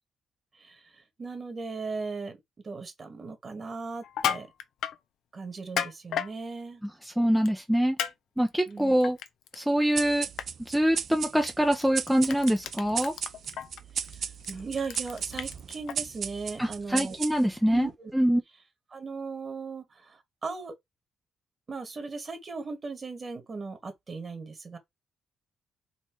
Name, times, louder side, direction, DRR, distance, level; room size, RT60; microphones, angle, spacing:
voice 1, 0.5-2.4 2.6-4.5 5.3-6.8 8.7-8.9 13.9-17.2 17.7-18.1 18.9-20.7 21.7-24.8, right 4 dB, 35° right, 1.7 m, -38 dB
Crushing, 4.0-5.0 5.6-6.3 7.5-7.6 8.0-8.1 8.5-9.6 9.9-10.1 10.4-10.5 11.4-11.5 11.8-15.9, left 9 dB, 75° left, 0.6 m, -33 dB
voice 2, 7.2-8.0 8.4-9.2 9.6-10.3 10.7-13.1 16.6-17.9 18.1-18.4, equal, ahead, 0.7 m, -24 dB
sound 1, 10.0-17.7, right 7 dB, 55° right, 0.5 m, -36 dB
4.3 x 2.7 x 4.5 m
cardioid pair, 90°, 0 cm